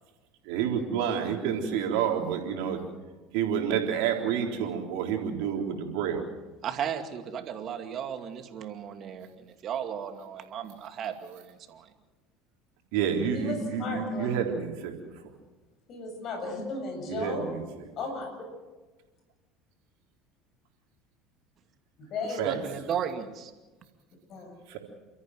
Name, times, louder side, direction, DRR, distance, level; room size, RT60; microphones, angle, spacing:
voice 1, 0.5-2.8 3.3-6.2 12.9-14.9 17.1-17.6 22.4-22.6 24.7-24.8, right 8 dB, 70° right, 2 dB, 3.7 m, -29 dB
voice 2, 6.6-11.9 22.2-23.5, right 8 dB, 45° right, 7 dB, 2.4 m, -35 dB
voice 3, 13.3-14.4 15.9-17.5 18.0-18.3 22.0-22.5 24.3-24.6, left 3 dB, 50° left, 3 dB, 7.3 m, -35 dB
29.5 x 14.0 x 7.8 m, 1.2 s
hypercardioid pair, 70°, 0 cm